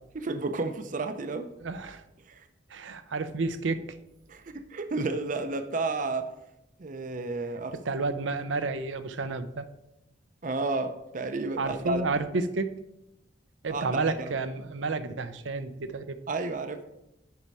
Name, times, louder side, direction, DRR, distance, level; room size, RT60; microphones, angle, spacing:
voice 1, 0.1-1.5 2.3-2.5 4.3-6.3 6.8-7.8 10.4-12.0 13.7-14.3 16.3-16.8, right 3 dB, 45° right, 8 dB, 0.5 m, -32 dB
voice 2, 1.6-2.0 2.7-3.8 7.9-9.7 11.6-12.7 13.6-16.2, right 3 dB, 85° right, 11 dB, 0.6 m, -30 dB
10.5 x 4.3 x 4.7 m, 0.87 s
head